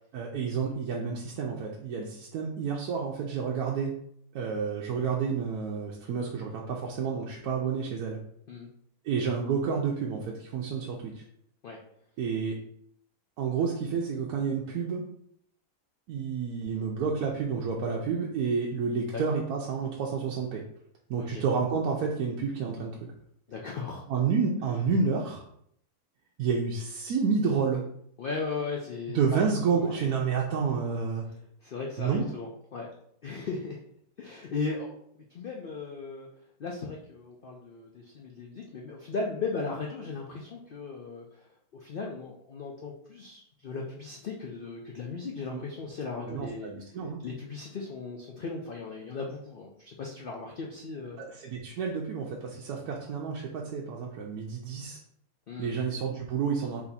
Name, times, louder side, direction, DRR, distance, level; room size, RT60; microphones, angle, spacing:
voice 1, 0.1-3.9 4.3-8.2 9.0-11.2 12.2-12.6 13.4-15.0 16.1-20.6 21.1-23.0 24.1-25.4 26.4-27.8 29.1-31.2 32.0-32.3 45.5-45.6 46.3-47.2 51.2-55.0 55.6-56.8, right 5 dB, 80° right, -2 dB, 1.1 m, -30 dB
voice 2, 23.5-24.0 28.2-30.0 31.6-32.9 33.2-33.8 34.2-36.3 36.6-41.5 41.7-46.7 47.2-51.2 55.5-55.7, left 4 dB, 70° left, 0 dB, 0.5 m, -37 dB
4.2 x 2.8 x 4.0 m, 0.70 s
omnidirectional pair, 1.6 m